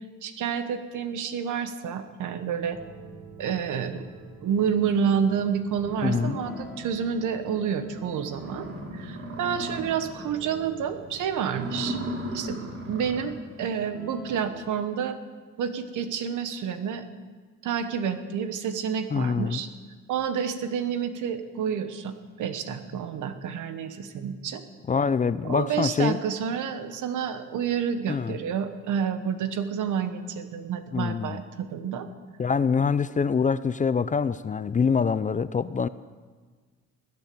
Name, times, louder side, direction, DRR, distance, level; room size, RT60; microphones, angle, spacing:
voice 1, 0.2-2.8 3.4-4.1 4.4-8.7 8.9-12.0 12.3-12.6 12.9-15.2 15.6-17.0 17.6-19.7 20.1-24.6 25.4-32.1, right 7 dB, 80° right, 9 dB, 1.3 m, -29 dB
sound 1, 2.7-14.5, right 1 dB, ahead, 2.5 m, -47 dB
sound 2, 5.3-5.4 5.8-7.2 7.6-7.7 8.0-8.1 8.3-10.3 10.6-10.9 11.4-13.4, right 1 dB, 50° right, 3.1 m, -36 dB
voice 2, 6.0-6.4 19.1-19.6 24.9-26.2 28.1-28.4 30.9-31.4 32.4-35.9, left 5 dB, 25° left, 15 dB, 0.5 m, -25 dB
20.5 x 8.3 x 6.9 m, 1.4 s
cardioid pair, 90°, 30 cm